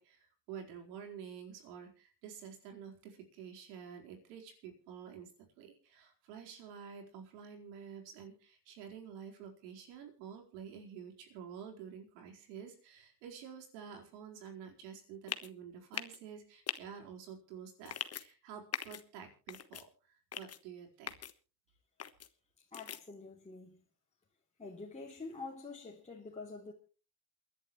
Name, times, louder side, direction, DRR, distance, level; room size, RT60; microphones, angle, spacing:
voice 1, 0.0-5.3 5.6-21.1, right 7 dB, 80° right, 4.5 m, -49 dB
sound 1, 15.3-15.5 15.9-16.2 16.7-16.8 17.9-18.2 18.7-19.0 19.5-19.8 20.3-20.6 21.1-21.3 22.0-22.3 22.7-23.0, left 8 dB, 30° left, 1.3 m, -40 dB
voice 2, 22.7-23.8 24.6-26.7, left 3 dB, 15° left, 2.9 m, -47 dB
28.5 x 11.0 x 3.1 m
supercardioid pair, 90°, 48 cm